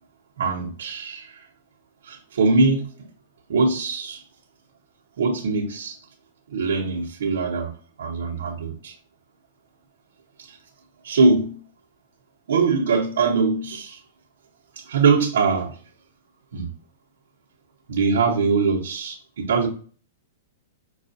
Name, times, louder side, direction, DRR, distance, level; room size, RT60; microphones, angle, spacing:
voice 1, 0.4-1.5 2.0-3.1 3.5-4.2 5.2-6.0 6.5-7.7 8.0-8.9 10.4-10.6 11.0-11.6 12.5-14.0 14.7-15.8 16.5-16.7 17.9-19.7, right 4 dB, 80° right, -5 dB, 0.9 m, -22 dB
5.5 x 2.4 x 2.6 m, 0.42 s
hypercardioid pair, 145°, 0 cm